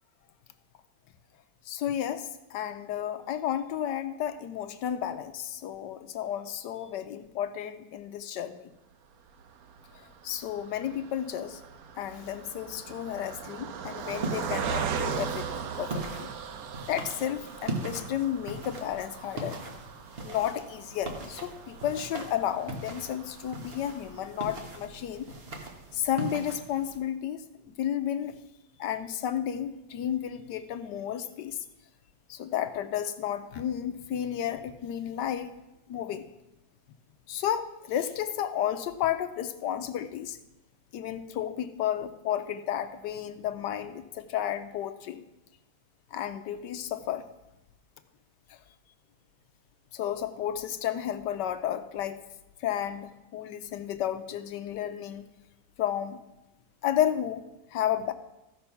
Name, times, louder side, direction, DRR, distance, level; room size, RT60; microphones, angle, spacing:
voice 1, 1.7-8.7 10.2-11.6 11.9-16.3 16.9-19.6 20.2-25.3 25.9-27.4 27.8-28.4 28.8-31.6 32.3-35.5 35.9-36.2 37.3-40.4 40.9-45.2 46.1-47.2 48.5-48.6 49.9-52.2 52.6-55.3 55.8-56.2 56.8-57.4 57.7-58.1, left 10 dB, 75° left, 10 dB, 1.1 m, -32 dB
Car passing by, 9.3-24.8 25.3-25.4 25.7-25.9, right 7 dB, 65° right, 0.9 m, -39 dB
sound 1, 14.0-27.0, right 2 dB, 35° right, 1.2 m, -40 dB
14.5 x 5.3 x 5.7 m, 0.94 s
omnidirectional pair, 2.1 m